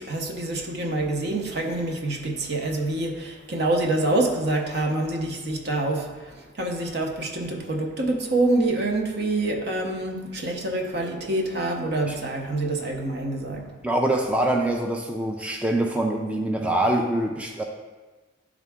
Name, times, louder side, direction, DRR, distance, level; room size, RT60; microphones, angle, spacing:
voice 1, 0.0-13.8, right 2 dB, 60° right, 2 dB, 0.8 m, -26 dB
voice 2, 13.8-17.6, right 1 dB, 5° right, 1 dB, 0.3 m, -24 dB
10.5 x 3.7 x 3.5 m, 1.3 s
head